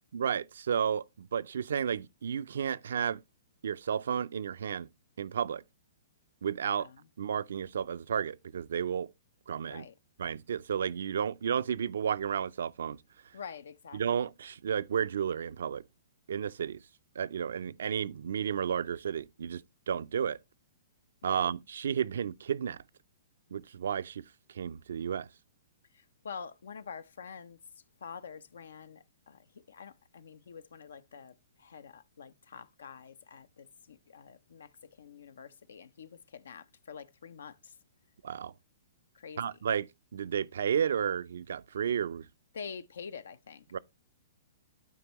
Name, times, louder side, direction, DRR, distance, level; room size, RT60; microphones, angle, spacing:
voice 1, 0.1-3.2 3.6-4.9 5.2-5.6 6.4-6.9 7.2-9.1 9.5-9.9 10.2-13.0 13.9-15.8 16.3-16.8 17.2-19.6 19.9-20.4 21.2-22.8 23.5-24.2 24.5-25.3 38.2-38.5 39.4-42.3 43.7-43.8, right 8 dB, 75° right, 0.4 m, -32 dB
voice 2, 13.3-14.3 21.2-21.5 26.2-27.6 28.0-29.4 29.7-34.7 35.0-37.6 39.1-39.4 42.5-43.6, left 6 dB, 80° left, 0.5 m, -46 dB
12.0 x 4.5 x 2.9 m
hypercardioid pair, 140°, 0 cm